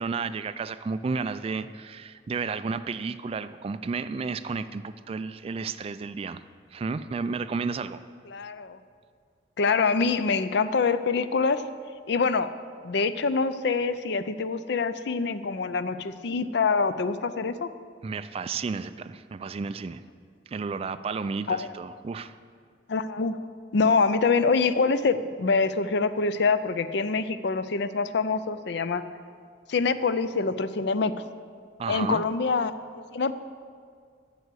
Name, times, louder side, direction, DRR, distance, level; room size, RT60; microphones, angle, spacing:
voice 1, 0.0-6.4 6.7-8.0 18.0-20.0 20.5-22.4 31.8-32.2, right 4 dB, 30° right, 11 dB, 0.3 m, -32 dB
voice 2, 8.3-8.8 9.6-11.7 12.1-12.5 12.8-17.7 21.5-21.7 22.9-23.4 23.7-29.0 29.7-31.3 31.9-32.7 33.1-33.3, left 4 dB, 65° left, 13 dB, 0.5 m, -25 dB
9.2 x 6.3 x 8.2 m, 2.1 s
head